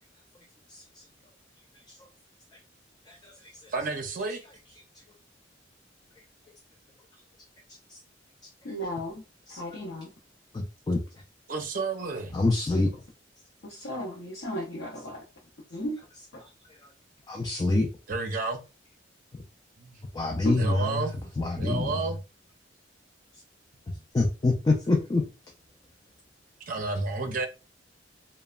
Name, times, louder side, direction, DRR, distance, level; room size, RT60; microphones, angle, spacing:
voice 1, 3.7-4.4 11.5-12.3 18.1-18.6 19.8-20.0 20.6-22.2 23.9-24.0 26.7-27.5, right 3 dB, 45° right, 0.6 m, -31 dB
voice 2, 8.6-9.2 9.5-10.1 13.6-15.2 15.7-16.0 16.3-16.4 20.4-20.5, equal, 75° left, 0.6 m, -34 dB
voice 3, 10.5-11.0 12.3-12.9 17.3-17.9 20.1-20.7 21.4-21.9 24.1-25.2, left 2 dB, 20° left, 0.3 m, -25 dB
3.0 x 2.1 x 2.3 m
head